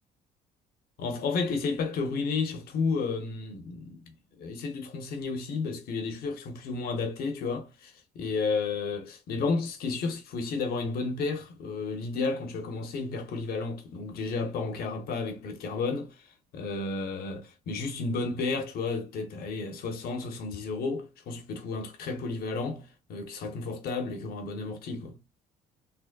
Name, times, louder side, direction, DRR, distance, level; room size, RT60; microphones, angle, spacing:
voice 1, 1.0-25.2, left 4 dB, 65° left, 0.9 m, -32 dB
3.5 x 2.0 x 2.2 m
cardioid pair, 110°, 17 cm